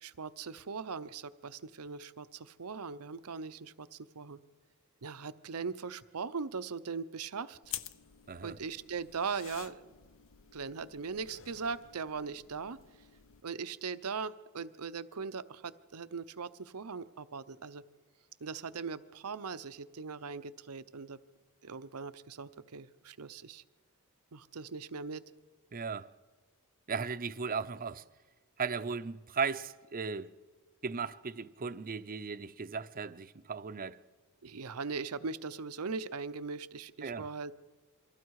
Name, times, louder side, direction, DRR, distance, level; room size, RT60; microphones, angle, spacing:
voice 1, 0.0-4.4 5.0-7.6 8.4-9.8 10.5-12.8 13.4-17.8 18.4-21.2 21.6-23.6 24.3-25.2 34.4-37.5, right 5 dB, 85° right, 0.8 m, -40 dB
sound 1, 7.6-13.4, left 10 dB, 60° left, 0.7 m, -49 dB
voice 2, 25.7-26.1 26.9-28.0 28.6-30.3 30.8-34.0 37.0-37.3, right 5 dB, 40° right, 0.6 m, -36 dB
27.5 x 23.5 x 4.8 m
head